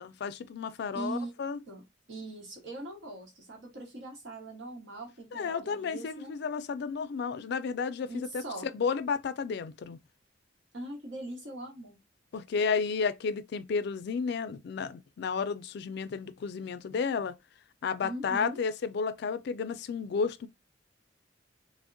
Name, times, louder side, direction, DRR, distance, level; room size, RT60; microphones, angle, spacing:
voice 1, 0.0-1.6 5.3-10.0 12.3-17.4 17.8-20.5, left 5 dB, 60° left, 0.3 m, -32 dB
voice 2, 0.9-1.3 1.7-1.8 2.1-6.3 8.1-8.7 10.7-12.0 18.0-18.6, right 1 dB, 80° right, 1.1 m, -41 dB
3.4 x 2.1 x 2.5 m
head